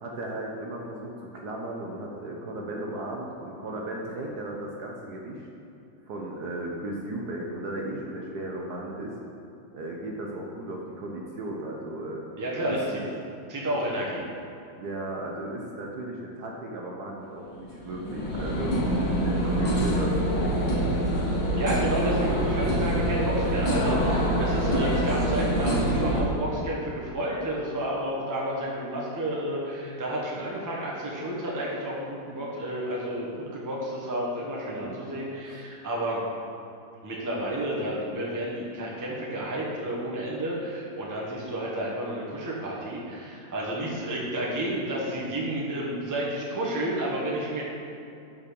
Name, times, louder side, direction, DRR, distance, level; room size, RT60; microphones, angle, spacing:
voice 1, 0.0-5.5 6.1-9.1 9.7-12.2 12.7-13.0 14.8-18.8 19.2-20.8 22.6-23.0 23.4-23.5 34.7-35.0 35.4-35.6, right 1 dB, 65° right, -1 dB, 1.2 m, -36 dB
voice 2, 12.4-13.0 13.5-14.2 21.6-36.2 37.0-47.6, right 1 dB, 15° right, -5 dB, 0.8 m, -31 dB
sound 1, 17.5-26.2, right 1 dB, 85° left, 2.1 m, -25 dB
5.7 x 5.2 x 6.2 m, 2.7 s
omnidirectional pair, 2.1 m